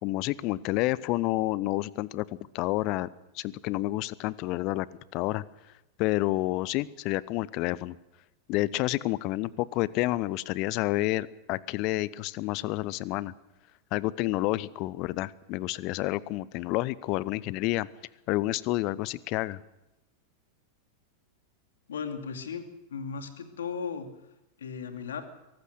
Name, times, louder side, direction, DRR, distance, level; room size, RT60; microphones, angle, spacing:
voice 1, 0.0-2.3 2.5-3.1 3.3-4.9 5.1-5.4 6.0-8.0 8.5-13.3 13.9-17.9 18.3-19.6, left 18 dB, 40° left, 21 dB, 0.8 m, -29 dB
voice 2, 21.9-22.6 22.9-24.1 24.6-25.3, left 6 dB, 65° left, 7 dB, 2.6 m, -36 dB
23.5 x 18.5 x 6.5 m, 0.93 s
figure-of-eight pair, 90°, 0 cm